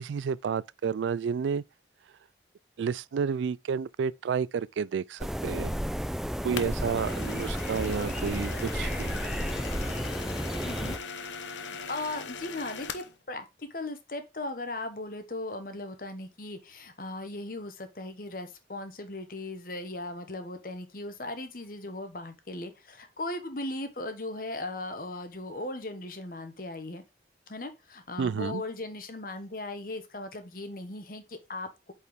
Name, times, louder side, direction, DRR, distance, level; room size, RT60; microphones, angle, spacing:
voice 1, 0.0-1.6 2.8-5.7 6.4-9.2 28.2-28.6, right 6 dB, 80° right, 0.3 m, -31 dB
sound 1, 5.2-11.0, equal, ahead, 0.5 m, -32 dB
sound 2, 6.6-13.2, left 5 dB, 85° left, 0.8 m, -40 dB
voice 2, 10.6-11.0 11.9-27.0 27.5-31.9, left 2 dB, 50° left, 1.2 m, -38 dB
8.3 x 4.4 x 3.5 m
head